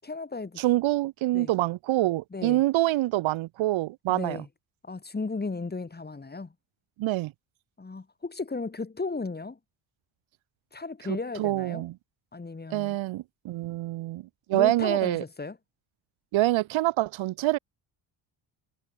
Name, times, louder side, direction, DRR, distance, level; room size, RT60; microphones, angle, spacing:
voice 1, 0.0-0.6 1.3-1.5 2.3-2.6 4.1-4.5 4.8-6.5 7.8-9.6 10.7-11.9 12.3-13.0 14.5-15.6, left 3 dB, 20° left, 7.7 m, -35 dB
voice 2, 0.6-4.4 7.0-7.3 11.1-11.9 12.7-14.2 14.5-15.2 16.3-17.6, right 16 dB, 80° right, 1.6 m, -26 dB
cardioid pair, 125°, 46 cm